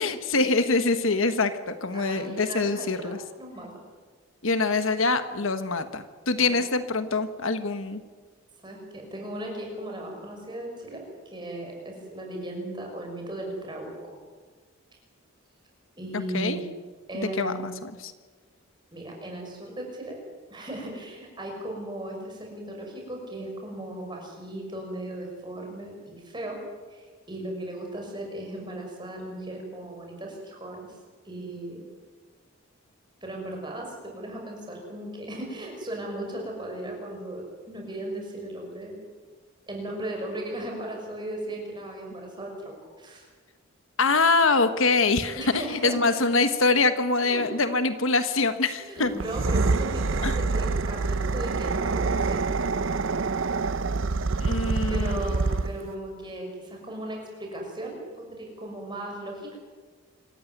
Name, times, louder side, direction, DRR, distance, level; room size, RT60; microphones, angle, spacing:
voice 1, 0.0-3.2 4.4-8.0 16.3-16.6 17.1-17.7 18.0-18.1 44.0-49.1 50.2-50.3 54.4-55.2, left 3 dB, 65° left, 10 dB, 1.3 m, -24 dB
voice 2, 1.9-3.7 6.4-6.7 8.6-11.0 11.3-14.2 16.0-16.6 17.1-17.8 18.9-20.2 20.5-26.6 26.9-31.0 31.2-31.8 33.2-39.0 39.7-43.3 45.3-46.0 47.2-47.4 48.8-52.4 54.9-59.6, right 1 dB, 20° right, 1 dB, 6.3 m, -36 dB
sound 1, 49.1-55.9, right 3 dB, 60° right, 0.7 m, -26 dB
26.0 x 15.0 x 9.4 m, 1.4 s
head